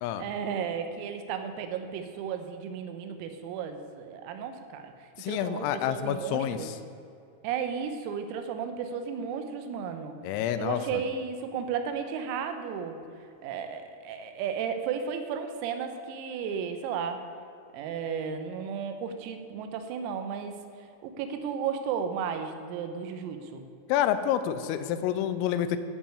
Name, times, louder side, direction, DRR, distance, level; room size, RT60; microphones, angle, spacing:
voice 1, 0.2-6.7 7.4-10.2 10.6-13.0 13.4-17.2 17.7-23.7, right 7 dB, 90° right, 7 dB, 3.6 m, -34 dB
voice 2, 5.2-6.8 10.2-11.0 23.9-25.8, left 10 dB, 90° left, 11 dB, 3.3 m, -28 dB
12.0 x 5.7 x 8.3 m, 2.5 s
omnidirectional pair, 6.0 m